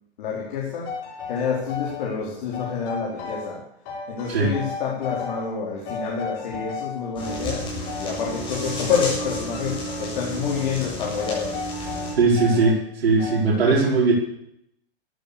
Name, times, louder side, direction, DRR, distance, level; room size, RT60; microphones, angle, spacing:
voice 1, 0.2-3.6 4.1-11.6, left 6 dB, 50° left, -2 dB, 4.6 m, -28 dB
sound 1, 0.8-2.1 2.5-3.6 3.9-5.6 5.9-7.4 7.9-8.9 9.2-10.2 10.5-10.8 11.2-12.8 13.2-13.6, left 5 dB, 30° left, 6.5 m, -35 dB
sound 2, 7.2-12.1, equal, 15° left, 7.7 m, -32 dB
voice 2, 12.2-14.1, right 4 dB, 75° right, -5 dB, 4.9 m, -19 dB
15.0 x 12.5 x 7.0 m, 0.76 s
hypercardioid pair, 150°, 31 cm